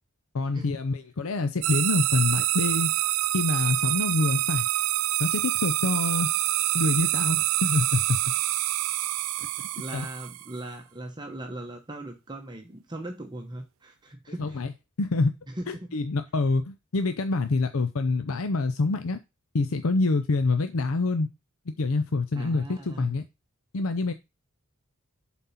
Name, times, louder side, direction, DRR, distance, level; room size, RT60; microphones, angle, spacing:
voice 1, 0.3-2.9 3.3-4.7 5.2-6.3 6.7-8.2 9.4-9.5 9.9-10.1 14.4-14.7 15.0-15.3 15.7-19.2 19.5-21.3 21.8-23.2 23.7-24.1, left 3 dB, 75° left, 0.6 m, -26 dB
sound 1, 1.6-10.6, right 17 dB, 70° right, 0.4 m, -26 dB
voice 2, 9.7-14.6 15.5-15.9 22.3-23.1, right 1 dB, 20° right, 0.9 m, -39 dB
7.4 x 4.2 x 5.7 m
head